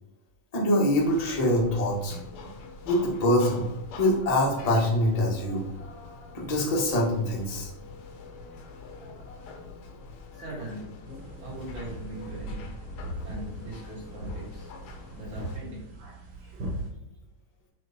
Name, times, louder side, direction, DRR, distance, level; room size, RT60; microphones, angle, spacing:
voice 1, 0.5-2.2 2.8-3.6 4.0-5.7 6.3-7.7, left 1 dB, 35° left, -4 dB, 0.5 m, -24 dB
sound 1, 0.9-15.6, left 4 dB, 65° left, 1.5 m, -45 dB
voice 2, 10.3-10.9 11.4-12.7 13.2-14.7 15.1-15.8 16.9-17.0, right 1 dB, 75° right, -8 dB, 4.2 m, -40 dB
sound 2, 11.0-16.9, right 1 dB, 55° right, 2.0 m, -39 dB
7.7 x 3.8 x 4.2 m, 0.88 s
omnidirectional pair, 3.3 m